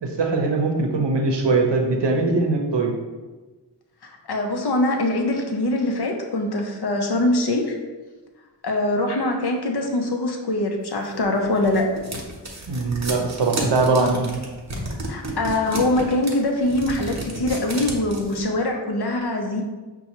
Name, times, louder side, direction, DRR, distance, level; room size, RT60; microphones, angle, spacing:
voice 1, 0.0-2.9 12.7-14.4, right 3 dB, 75° right, 3 dB, 0.7 m, -21 dB
voice 2, 4.3-7.7 8.6-11.9 15.1-19.6, left 2 dB, 65° left, 3 dB, 0.7 m, -23 dB
sound 1, 11.2-18.4, right 1 dB, 40° right, 0.8 m, -32 dB
5.3 x 2.3 x 2.9 m, 1.3 s
wide cardioid pair, 55°, 43 cm